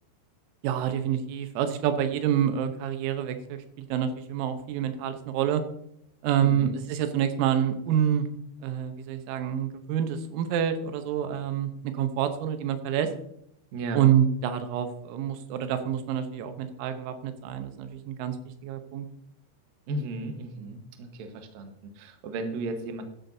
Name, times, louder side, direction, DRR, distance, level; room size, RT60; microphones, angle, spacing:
voice 1, 0.6-5.6 6.2-8.3 8.6-13.1 13.9-18.4 18.6-19.1, right 9 dB, 90° right, 8 dB, 3.7 m, -27 dB
voice 2, 6.4-6.7 13.7-14.0 19.9-23.1, right 2 dB, 75° right, 5 dB, 2.1 m, -35 dB
13.5 x 12.0 x 2.7 m, 0.73 s
omnidirectional pair, 5.9 m